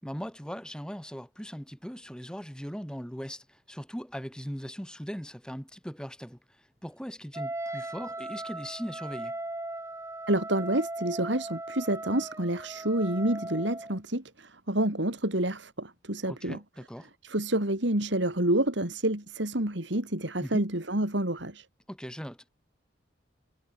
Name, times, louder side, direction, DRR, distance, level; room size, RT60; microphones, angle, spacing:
voice 1, 0.0-9.4 16.3-17.1 20.4-20.6 21.9-22.5, equal, 5° left, 7.6 m, -39 dB
Wind instrument woodwind instrument, 7.3-14.0, right 2 dB, 15° right, 3.3 m, -38 dB
voice 2, 10.3-16.6 17.2-21.7, right 1 dB, 65° right, 3.8 m, -28 dB
head